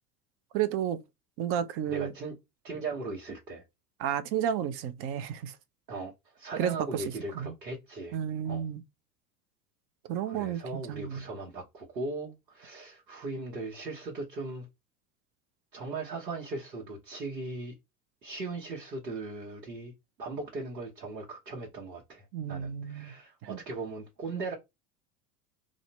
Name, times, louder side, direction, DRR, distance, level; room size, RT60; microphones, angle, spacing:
voice 1, 0.5-1.0 1.4-2.1 4.0-5.6 6.6-7.0 7.3-7.5 8.1-8.8 10.1-11.2 22.3-23.1 23.4-23.6, right 9 dB, 30° right, 0.4 m, -32 dB
voice 2, 1.9-2.3 2.6-3.6 5.9-8.2 8.5-8.7 10.3-14.6 15.7-17.7 18.2-19.9 20.2-24.5, right 3 dB, 85° right, 1.2 m, -38 dB
3.6 x 2.0 x 4.1 m
figure-of-eight pair, 80°, 49 cm